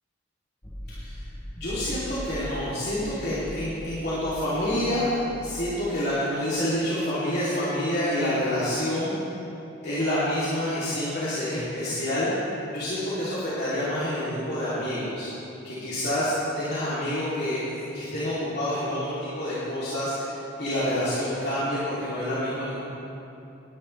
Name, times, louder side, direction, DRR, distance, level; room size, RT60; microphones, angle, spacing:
sound 1, 0.6-5.9, equal, 15° left, 0.8 m, -40 dB
voice 1, 1.5-5.1 5.4-9.1 9.8-12.3 12.7-15.3 15.6-17.7 17.9-22.8, left 1 dB, 55° left, -12 dB, 3.0 m, -28 dB
18.0 x 11.5 x 3.3 m, 2.9 s
head